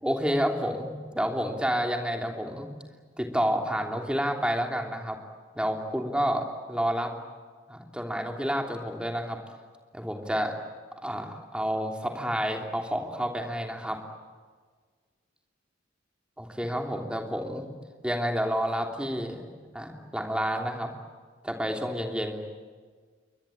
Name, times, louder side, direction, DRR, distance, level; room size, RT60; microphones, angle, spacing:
voice 1, 0.0-2.7 3.2-5.2 5.5-7.1 7.7-9.4 9.9-10.6 11.0-14.0 16.4-17.7 18.0-19.4 19.7-20.9 21.4-22.4, equal, 5° right, 3 dB, 3.1 m, -29 dB
28.5 x 23.5 x 8.7 m, 1.5 s
head